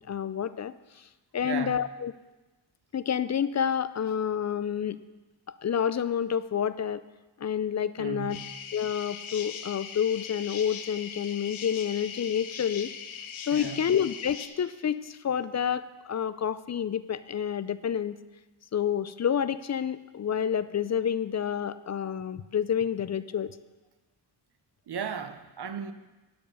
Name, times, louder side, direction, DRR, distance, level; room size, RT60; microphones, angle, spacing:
voice 1, 0.1-1.0 1.3-2.1 2.9-5.0 5.6-7.0 7.4-8.4 8.7-13.2 13.5-18.2 18.7-23.6, left 8 dB, 35° left, 14 dB, 0.4 m, -29 dB
voice 2, 1.4-1.8 8.0-8.5 13.5-13.8 24.9-25.9, right 7 dB, 55° right, 9 dB, 0.8 m, -36 dB
sound 1, 8.3-14.5, left 7 dB, 80° left, 0.8 m, -40 dB
11.5 x 5.3 x 5.5 m, 1.1 s
cardioid pair, 55°, 47 cm